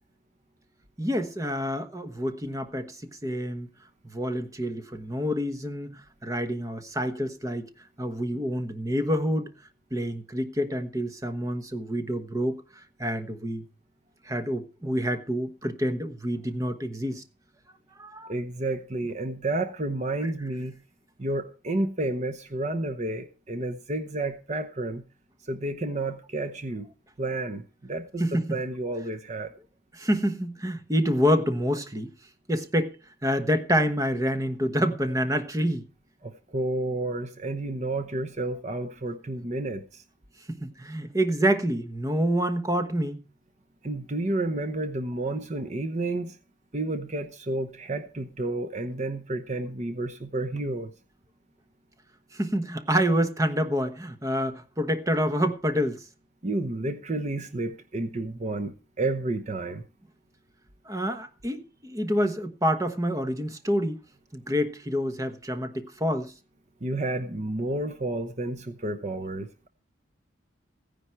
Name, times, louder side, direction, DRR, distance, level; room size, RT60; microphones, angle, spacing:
voice 1, 1.0-3.0 3.2-3.7 4.0-7.7 8.0-9.5 9.9-12.6 13.0-13.6 14.2-17.2 17.9-18.3 20.2-20.3 28.2-28.5 29.9-32.1 32.5-33.0 33.2-35.8 40.6-43.2 52.3-56.0 60.9-64.0 64.3-66.3, equal, 15° right, 1.1 m, -27 dB
voice 2, 18.3-20.8 21.2-25.0 25.4-26.9 27.2-29.5 36.2-40.0 43.8-46.4 46.7-50.9 56.4-59.8 66.8-69.7, right 2 dB, 35° right, 0.9 m, -31 dB
16.0 x 10.0 x 4.6 m
head